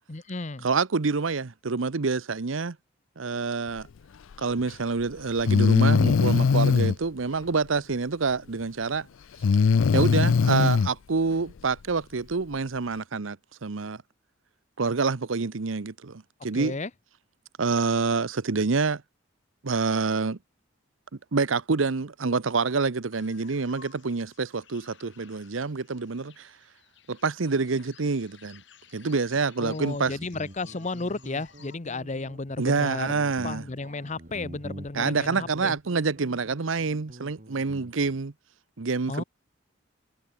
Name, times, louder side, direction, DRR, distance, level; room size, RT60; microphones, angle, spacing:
voice 1, 0.1-0.7 16.5-16.9 29.6-33.2 33.4-35.8 39.1-39.2, left 3 dB, 35° left, 1.0 m, -33 dB
voice 2, 0.6-2.8 3.2-3.9 4.4-9.1 9.9-14.0 14.8-16.8 17.6-19.0 19.6-20.4 21.3-26.5 27.1-28.6 28.9-30.2 32.6-33.7 34.9-38.3 38.8-39.2, right 4 dB, 90° right, 0.8 m, -27 dB
Breathing, 4.6-4.7 5.4-6.9 9.4-10.9, left 5 dB, 85° left, 0.4 m, -20 dB
sound 1, 23.1-31.8, left 7 dB, 65° left, 7.7 m, -56 dB
Guitar, 29.7-38.2, right 1 dB, 45° right, 2.6 m, -46 dB
head